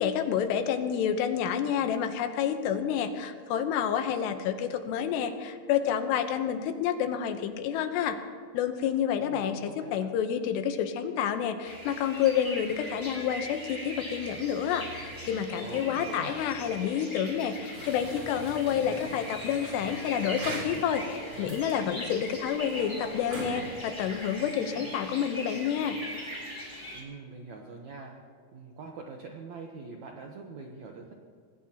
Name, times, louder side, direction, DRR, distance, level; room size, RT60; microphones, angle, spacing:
voice 1, 0.0-8.2 8.5-26.0, left 8 dB, 85° left, 8 dB, 3.1 m, -29 dB
voice 2, 9.2-10.1 15.6-16.4 26.9-28.1 28.5-31.1, right 4 dB, 75° right, 1 dB, 1.7 m, -44 dB
sound 1, 11.6-27.0, equal, 5° left, 3.0 m, -41 dB
sound 2, 17.7-24.9, right 2 dB, 35° right, 3.9 m, -43 dB
25.5 x 18.0 x 2.9 m, 2.1 s
omnidirectional pair, 4.8 m